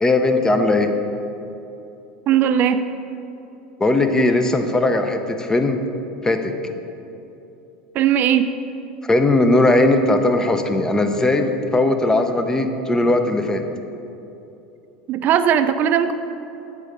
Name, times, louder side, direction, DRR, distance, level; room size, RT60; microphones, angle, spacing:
voice 1, 0.0-0.9 3.8-5.8 6.2-6.5 9.1-13.6, left 2 dB, 15° left, 7 dB, 0.7 m, -18 dB
voice 2, 2.3-2.8 7.9-8.5 15.1-16.1, right 9 dB, 45° right, 10 dB, 0.5 m, -18 dB
8.5 x 4.9 x 5.2 m, 2.9 s
hypercardioid pair, 100°, 4 cm